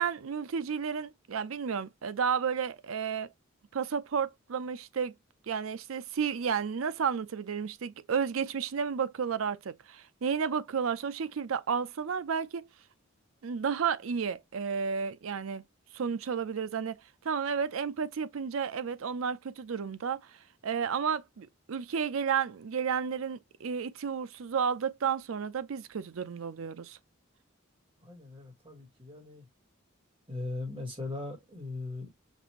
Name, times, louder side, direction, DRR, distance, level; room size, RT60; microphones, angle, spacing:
voice 1, 0.0-3.3 3.7-5.1 5.5-12.7 13.4-15.6 15.9-20.3 20.6-27.0, right 6 dB, 85° right, 0.5 m, -32 dB
voice 2, 28.0-29.4 30.3-32.1, left 2 dB, 25° right, 1.7 m, -39 dB
5.3 x 2.5 x 2.9 m
head